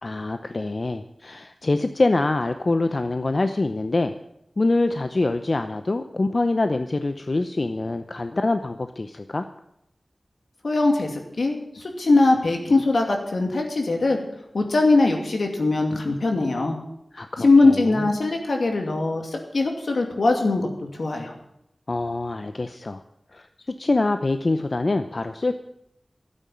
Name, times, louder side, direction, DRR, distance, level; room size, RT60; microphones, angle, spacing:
voice 1, 0.0-4.1 4.6-9.5 17.1-18.1 21.9-23.0 23.3-25.5, left 2 dB, 55° left, 8 dB, 0.7 m, -25 dB
voice 2, 10.6-14.2 14.5-16.8 17.4-20.7 21.0-21.3, left 3 dB, 80° left, 3 dB, 2.5 m, -21 dB
12.5 x 8.9 x 8.8 m, 0.81 s
wide cardioid pair, 50°, 0 cm